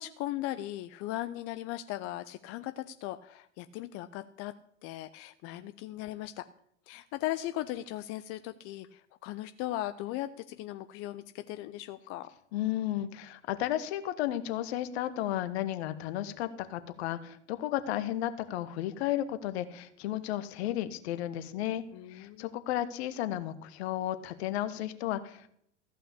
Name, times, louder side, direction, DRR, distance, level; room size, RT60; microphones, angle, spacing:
voice 1, 0.0-4.5 4.8-6.5 6.9-12.3 21.9-22.6, left 15 dB, 40° left, 11 dB, 0.6 m, -38 dB
voice 2, 12.5-21.8 22.1-25.5, left 13 dB, 60° left, 12 dB, 1.3 m, -33 dB
14.5 x 5.8 x 8.4 m, 0.69 s
hypercardioid pair, 90°, 37 cm